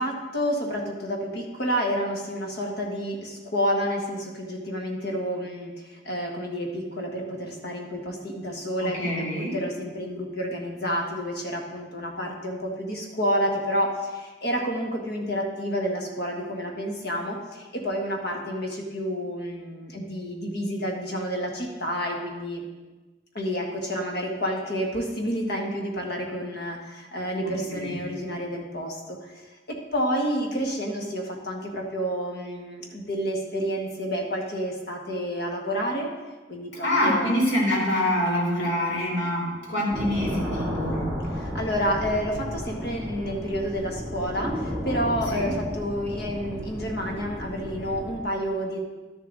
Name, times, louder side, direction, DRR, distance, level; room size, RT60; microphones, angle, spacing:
voice 1, 0.0-22.6 23.3-29.4 29.7-36.1 36.5-37.3 41.2-48.8, equal, 60° left, 1 dB, 1.7 m, -29 dB
voice 2, 8.8-9.6 27.4-28.0 36.8-41.1 45.3-45.5, left 1 dB, 85° left, -4 dB, 3.5 m, -26 dB
sound 1, 39.9-48.2, equal, ahead, 2.1 m, -33 dB
12.0 x 7.1 x 4.0 m, 1.2 s
head